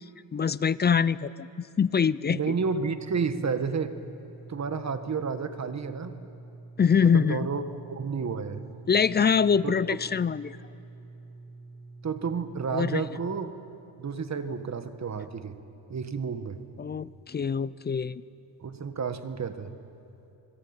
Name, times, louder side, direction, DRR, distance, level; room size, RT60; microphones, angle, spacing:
voice 1, 0.3-1.5 1.8-2.4 6.8-7.5 8.9-10.6 12.7-13.0 16.8-18.2, left 6 dB, 20° left, 18 dB, 0.5 m, -24 dB
voice 2, 2.3-3.9 4.5-6.2 7.0-7.6 7.9-8.6 9.6-9.7 12.0-13.5 14.0-15.6 15.9-16.6 18.6-19.7, right 5 dB, 35° right, 9 dB, 1.7 m, -31 dB
sound 1, 2.5-13.4, right 3 dB, 5° right, 7.5 m, -47 dB
26.0 x 20.5 x 8.9 m, 2.8 s
cardioid pair, 90°, 48 cm